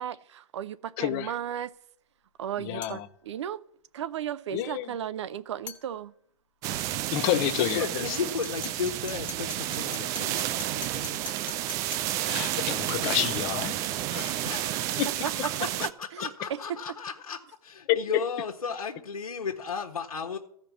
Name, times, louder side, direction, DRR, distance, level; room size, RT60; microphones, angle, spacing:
voice 1, 0.0-1.7 2.4-3.6 3.9-6.1 14.7-14.8 15.2-15.3 15.8-16.3, right 10 dB, 50° right, 0.7 m, -35 dB
voice 2, 1.0-1.3 2.6-3.1 4.5-4.9 7.1-8.2 12.3-13.8 14.1-14.5 15.0-15.1 17.9-18.2, left 13 dB, 30° left, 0.6 m, -29 dB
sound 1, 2.8-3.1 5.7-5.9 8.4-12.2, left 5 dB, 5° left, 1.3 m, -43 dB
sound 2, 6.6-15.9, right 13 dB, 20° right, 0.3 m, -31 dB
voice 3, 7.3-11.2 14.4-15.0 15.4-20.4, left 6 dB, 75° left, 1.4 m, -35 dB
14.5 x 5.2 x 7.2 m
figure-of-eight pair, 125°, 18 cm